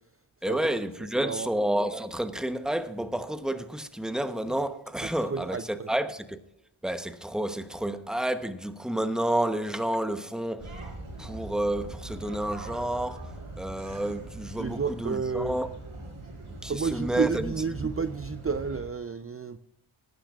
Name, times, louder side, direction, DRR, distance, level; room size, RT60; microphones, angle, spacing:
voice 1, 0.4-6.4 6.8-10.7 11.2-15.7 16.5-17.5, right 1 dB, ahead, 0.9 m, -30 dB
voice 2, 1.2-1.5 5.3-5.9 14.6-15.6 16.7-19.6, right 5 dB, 30° right, 0.6 m, -31 dB
sound 1, 10.6-18.8, right 2 dB, 85° right, 3.9 m, -41 dB
21.0 x 9.9 x 2.4 m
wide cardioid pair, 65°, 50 cm